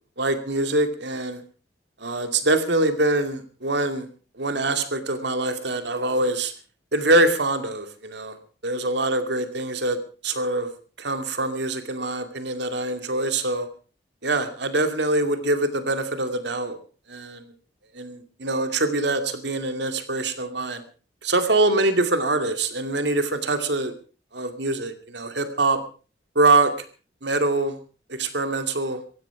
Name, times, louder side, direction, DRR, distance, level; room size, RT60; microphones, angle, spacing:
voice 1, 0.2-1.4 2.0-4.1 4.3-6.5 6.9-8.4 8.6-10.0 10.2-10.7 11.0-13.7 14.2-16.8 17.1-17.5 17.9-20.8 21.2-23.9 24.3-25.8 26.3-26.9 27.2-27.8 28.1-29.0, right 2 dB, 75° right, 8 dB, 2.5 m, -24 dB
16.5 x 15.5 x 5.0 m, 0.37 s
head